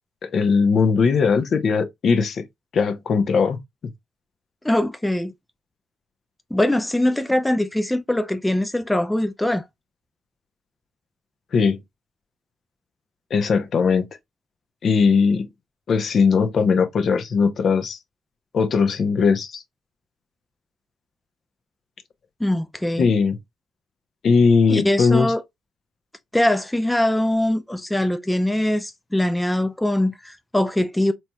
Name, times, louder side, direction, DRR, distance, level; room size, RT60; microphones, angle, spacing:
voice 1, 0.2-2.4 2.7-3.6 11.5-11.8 13.3-14.1 14.8-15.5 15.9-18.0 18.5-19.6 23.0-23.4 24.2-25.3, left 5 dB, 55° left, 0.7 m, -19 dB
voice 2, 4.6-5.3 6.5-9.6 22.4-23.1 24.7-25.4 26.3-31.1, left 1 dB, 5° left, 0.4 m, -22 dB
4.1 x 3.0 x 2.2 m
cardioid pair, 90°, 0 cm